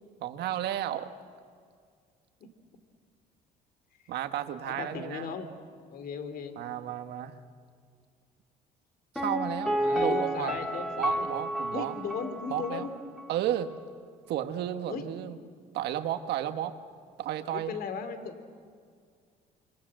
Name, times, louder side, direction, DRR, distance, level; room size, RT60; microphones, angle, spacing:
voice 1, 0.2-1.1 4.1-5.3 6.6-7.4 9.1-10.6 11.0-11.9 12.5-12.9 13.3-13.7 14.3-15.4 15.7-16.7 17.2-17.8, right 11 dB, 75° right, 8 dB, 1.7 m, -33 dB
voice 2, 4.6-5.5 5.9-6.6 9.8-11.3 11.7-12.9 14.9-15.1 17.5-18.4, left 6 dB, 65° left, 9 dB, 3.0 m, -36 dB
Piano, 9.1-12.9 13.2-13.3, equal, ahead, 2.3 m, -31 dB
27.0 x 25.5 x 7.8 m, 2.1 s
cardioid pair, 110°, 17 cm